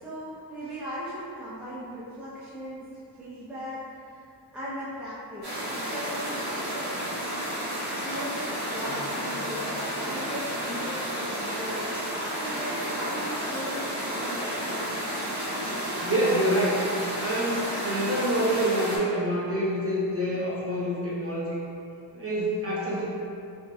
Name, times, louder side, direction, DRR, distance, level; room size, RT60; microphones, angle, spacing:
voice 1, 0.0-6.9 8.0-11.9 12.3-14.9, equal, 5° right, -10 dB, 0.5 m, -38 dB
sound 1, 5.4-19.0, equal, 65° right, 1.0 m, -31 dB
sound 2, 8.9-12.4, left 3 dB, 35° left, 0.7 m, -52 dB
voice 2, 15.7-16.8 17.2-21.6 22.1-23.1, right 1 dB, 35° right, -8 dB, 0.8 m, -27 dB
3.0 x 2.7 x 2.3 m, 2.5 s
wide cardioid pair, 85°, 42 cm